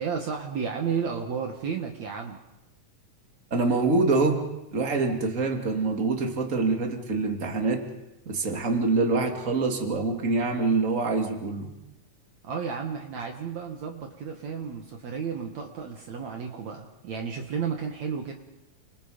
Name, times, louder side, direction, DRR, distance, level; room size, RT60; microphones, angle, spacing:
voice 1, 0.0-2.4 12.4-18.3, right 6 dB, 60° right, 3 dB, 2.6 m, -32 dB
voice 2, 3.5-4.4 4.7-7.8 8.3-11.7, right 3 dB, 25° right, 3 dB, 2.7 m, -25 dB
29.5 x 26.5 x 5.2 m, 0.95 s
omnidirectional pair, 3.9 m